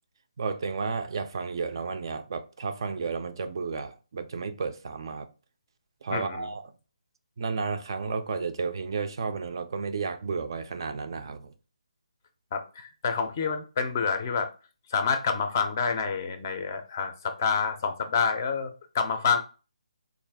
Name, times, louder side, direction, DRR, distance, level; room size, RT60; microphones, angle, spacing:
voice 1, 0.4-5.3 6.0-6.6 7.4-11.5, right 5 dB, 40° right, 0.3 m, -32 dB
voice 2, 6.1-6.5 12.5-14.5 14.9-19.4, left 5 dB, 25° left, 0.4 m, -28 dB
3.9 x 2.4 x 3.4 m
hypercardioid pair, 170°, 4 cm